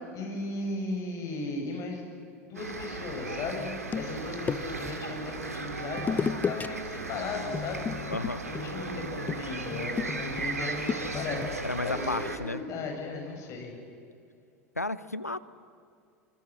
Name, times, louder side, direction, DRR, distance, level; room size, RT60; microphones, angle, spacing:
voice 1, 0.1-2.0 2.4-7.9 8.4-11.5 11.8-13.8, left 3 dB, 40° left, 2 dB, 6.9 m, -36 dB
sound 1, 2.5-12.4, right 3 dB, 80° right, 2.4 m, -36 dB
sound 2, 3.6-5.0 6.0-6.7 7.0-7.2 7.5-11.6, left 6 dB, 20° left, 1.0 m, -34 dB
voice 2, 8.1-8.4 11.6-12.6 14.8-15.4, left 2 dB, 90° left, 16 dB, 0.8 m, -32 dB
27.0 x 25.5 x 7.5 m, 2.4 s
figure-of-eight pair, 80°, 8 cm